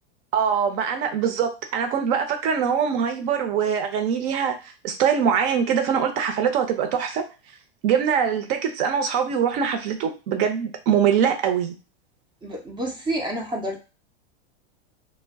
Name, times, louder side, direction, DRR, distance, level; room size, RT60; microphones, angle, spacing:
voice 1, 0.3-4.5 4.8-7.2 7.8-11.8, right 7 dB, 55° right, 5 dB, 0.7 m, -23 dB
voice 2, 12.4-13.8, right 1 dB, 15° right, 1 dB, 0.4 m, -29 dB
2.2 x 2.2 x 3.5 m, 0.31 s
hypercardioid pair, 120°, 33 cm